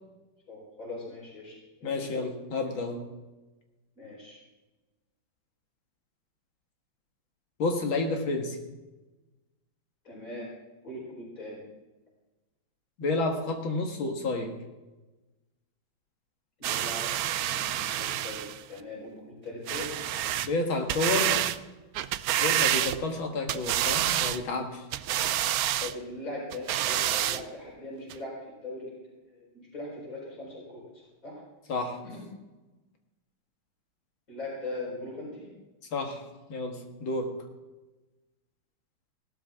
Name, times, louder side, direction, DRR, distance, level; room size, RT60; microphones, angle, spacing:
voice 1, 0.5-2.1 2.6-2.7 3.9-4.4 10.0-10.5 10.8-11.6 16.6-17.1 17.4-19.9 25.8-28.4 28.6-29.0 29.4-31.4 32.0-32.2 34.3-35.5, left 2 dB, 45° left, -4 dB, 5.0 m, -40 dB
voice 2, 1.8-3.0 7.6-8.6 13.0-14.5 20.4-21.5 22.4-24.9 31.7-32.0 35.9-36.2 36.5-37.3, left 3 dB, 85° left, 3 dB, 2.4 m, -30 dB
sound 1, 16.6-18.6 19.7-20.5 20.9-21.6 22.0-23.2 23.5-24.4 24.9-25.9 26.5-27.4 28.1-28.2, right 12 dB, 80° right, 0.8 m, -28 dB
17.0 x 12.5 x 3.6 m, 1.1 s
omnidirectional pair, 2.1 m